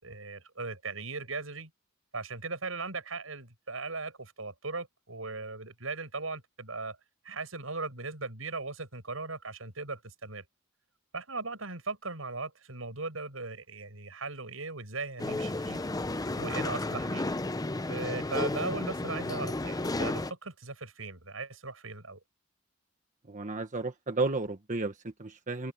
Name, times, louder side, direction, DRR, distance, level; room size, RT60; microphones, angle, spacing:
voice 1, 0.0-1.7 2.1-7.0 7.2-10.4 11.1-15.8 16.4-17.3 17.9-22.2, right 3 dB, 90° right, 7.1 m, -38 dB
sound 1, 15.2-20.3, left 2 dB, 20° left, 0.7 m, -32 dB
voice 2, 23.3-25.7, right 3 dB, 40° right, 1.3 m, -33 dB
head